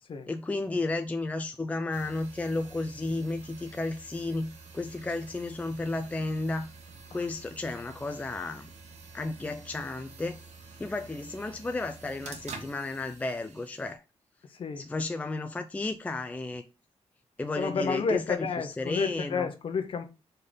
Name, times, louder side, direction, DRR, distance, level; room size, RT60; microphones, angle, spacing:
voice 1, 0.3-6.7 7.1-8.7 9.1-10.4 10.8-14.0 14.8-16.6 17.4-19.5, left 2 dB, 10° left, 0.4 m, -33 dB
sound 1, 1.9-13.9, right 4 dB, 85° right, 1.7 m, -48 dB
voice 2, 14.5-14.8 17.6-20.0, left 5 dB, 50° left, 1.2 m, -31 dB
5.1 x 4.4 x 5.3 m
wide cardioid pair, 165°, 11 cm